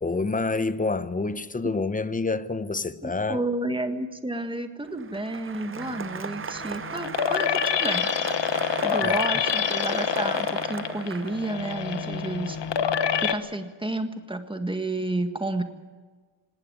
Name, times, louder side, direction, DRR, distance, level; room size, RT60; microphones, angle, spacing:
voice 1, 0.0-3.4 9.0-9.1, left 3 dB, 15° left, 0.8 m, -27 dB
voice 2, 3.0-8.1 8.8-12.6 13.2-15.6, right 2 dB, 10° right, 1.7 m, -31 dB
Applause, 4.8-11.8, right 6 dB, 25° right, 0.6 m, -37 dB
sound 1, 5.8-13.3, left 7 dB, 65° left, 1.3 m, -27 dB
19.0 x 18.5 x 9.2 m
wide cardioid pair, 145°, 47 cm